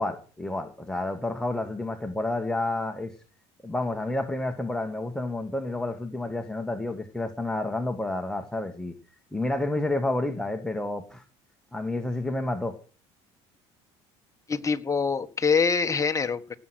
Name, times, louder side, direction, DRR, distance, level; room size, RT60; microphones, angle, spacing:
voice 1, 0.0-3.2 3.6-8.9 9.3-11.2 11.7-12.8, left 2 dB, 5° left, 5 dB, 1.8 m, -30 dB
voice 2, 14.5-16.6, left 5 dB, 20° left, 7 dB, 1.5 m, -25 dB
17.0 x 7.7 x 6.3 m, 0.37 s
supercardioid pair, 90°, 14 cm